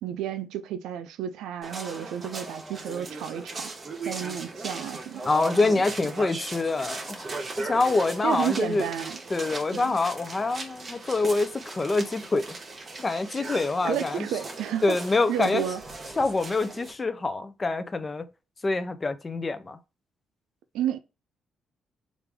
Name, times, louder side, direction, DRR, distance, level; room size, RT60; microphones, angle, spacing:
voice 1, 0.0-3.7 4.0-5.3 5.6-5.8 8.2-9.2 9.7-9.9 13.8-15.0 15.3-15.8 20.7-21.0, right 10 dB, 85° right, 0.4 m, -31 dB
sound 1, 1.6-16.9, right 3 dB, 35° right, 0.9 m, -38 dB
voice 2, 5.2-7.3 7.6-8.9 9.3-12.5 13.0-14.3 14.8-15.6 16.2-18.3 18.6-19.8, left 3 dB, 25° left, 0.5 m, -26 dB
3.3 x 2.6 x 3.3 m
cardioid pair, 90°, 0 cm